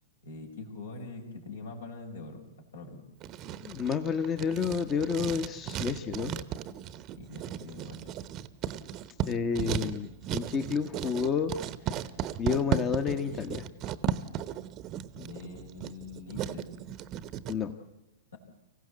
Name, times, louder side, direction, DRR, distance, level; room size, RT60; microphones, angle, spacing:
voice 1, 0.2-2.4 2.7-3.0 7.2-8.0 15.2-16.7, left 3 dB, 75° left, 2 dB, 4.5 m, -43 dB
Writing, 3.2-17.6, right 10 dB, 35° right, 0.9 m, -36 dB
voice 2, 3.6-6.3 9.3-11.5 11.9-12.0 12.4-13.7 17.5-17.7, left 6 dB, 25° left, 7 dB, 1.2 m, -30 dB
25.0 x 15.5 x 8.1 m, 0.95 s
figure-of-eight pair, 105°, 0 cm